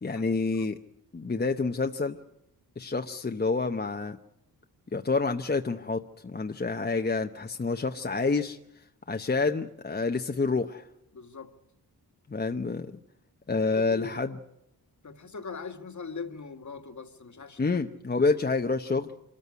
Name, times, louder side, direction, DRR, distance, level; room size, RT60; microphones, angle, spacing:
voice 1, 0.0-0.8 1.1-2.2 2.8-4.2 4.9-8.6 9.1-10.8 12.3-13.0 13.5-14.4 17.6-19.1, left 4 dB, 25° left, 5 dB, 0.8 m, -28 dB
voice 2, 11.1-11.5 13.6-14.3 15.0-17.8 18.1-18.2, left 5 dB, 50° left, 7 dB, 1.7 m, -41 dB
25.0 x 14.0 x 9.5 m, 0.79 s
wide cardioid pair, 105°, 38 cm